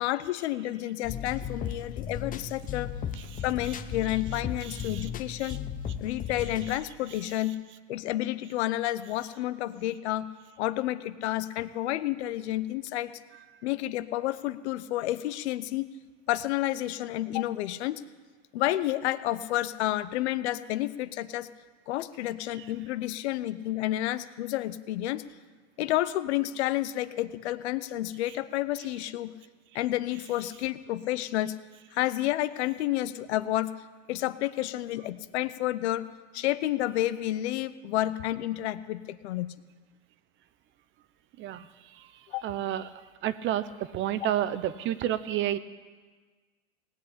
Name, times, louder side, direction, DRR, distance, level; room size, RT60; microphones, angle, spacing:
voice 1, 0.0-2.9 3.4-5.6 6.0-7.6 7.9-10.3 10.6-13.1 13.6-15.9 16.3-18.0 18.5-21.5 21.9-25.2 25.8-29.3 29.7-31.5 31.9-33.7 34.1-36.1 36.3-39.5 42.3-42.4, left 15 dB, 70° left, 14 dB, 0.8 m, -30 dB
sound 1, 1.0-6.7, left 8 dB, 25° left, 0.8 m, -36 dB
voice 2, 4.6-5.1 5.4-5.6 41.4-41.7 42.4-42.9 43.2-45.6, right 12 dB, 35° right, 14 dB, 0.7 m, -30 dB
18.5 x 7.9 x 8.6 m, 1.4 s
supercardioid pair, 120°, 34 cm